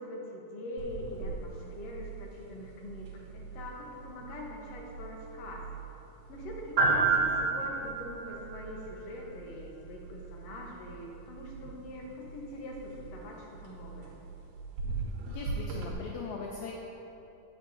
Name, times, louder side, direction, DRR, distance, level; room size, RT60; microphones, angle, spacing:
voice 1, 0.0-5.6 6.3-14.2, left 1 dB, 65° left, -1 dB, 1.9 m, -43 dB
sound 1, 0.8-15.9, right 4 dB, 75° right, 2.5 m, -35 dB
voice 2, 15.3-16.7, left 4 dB, 80° left, -1 dB, 1.8 m, -40 dB
9.2 x 8.4 x 2.7 m, 3.0 s
omnidirectional pair, 3.6 m